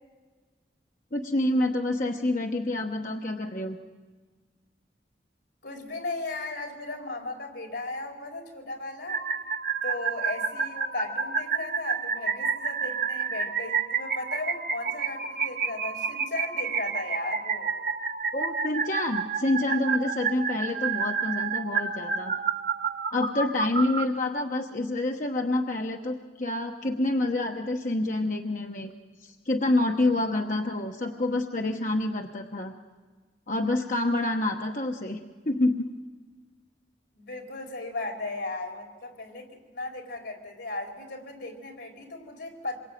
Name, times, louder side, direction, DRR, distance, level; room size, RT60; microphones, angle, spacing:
voice 1, 1.1-3.8 18.3-22.3 23.1-28.9 29.2-32.7 33.5-35.2 35.4-35.9, left 2 dB, 45° left, 3 dB, 1.1 m, -27 dB
voice 2, 5.6-9.2 9.8-17.7 37.2-42.8, left 2 dB, 75° left, 3 dB, 4.7 m, -36 dB
sound 1, 9.1-24.1, right 5 dB, 50° right, 1.2 m, -30 dB
26.5 x 22.5 x 9.3 m, 1.4 s
head